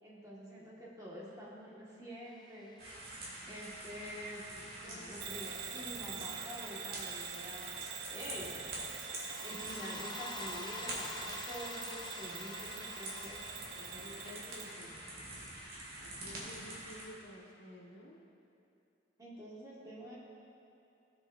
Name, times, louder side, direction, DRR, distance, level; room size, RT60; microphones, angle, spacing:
voice 1, 0.0-2.7 3.5-4.4 4.8-7.7 8.1-8.5 9.4-13.4 16.4-16.5 19.2-20.2, equal, 20° right, -6 dB, 1.7 m, -47 dB
sound 1, 2.5-3.5 8.8-15.5, left 4 dB, 25° left, 0.3 m, -48 dB
sound 2, 2.8-17.1, right 1 dB, 50° right, 2.3 m, -46 dB
voice 2, 4.4-5.3 13.7-15.0 16.0-18.2, equal, 70° left, -3 dB, 1.5 m, -53 dB
Bell / Alarm, 5.2-14.7, right 9 dB, 65° right, 0.4 m, -45 dB
17.5 x 7.0 x 2.6 m, 2.7 s
head